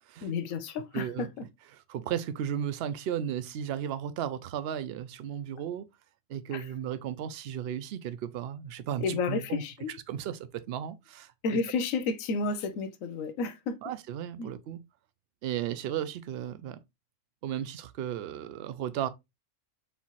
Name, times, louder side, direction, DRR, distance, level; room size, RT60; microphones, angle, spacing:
voice 1, 0.2-1.4 6.5-6.7 9.0-9.9 11.4-13.8 14.4-14.5, left 4 dB, 90° left, 1.0 m, -31 dB
voice 2, 0.9-1.3 1.7-5.9 6.3-9.6 10.1-11.6 13.8-14.8 15.4-16.8 17.4-19.1, right 10 dB, 65° right, 0.7 m, -35 dB
4.3 x 3.6 x 2.8 m
omnidirectional pair, 1.4 m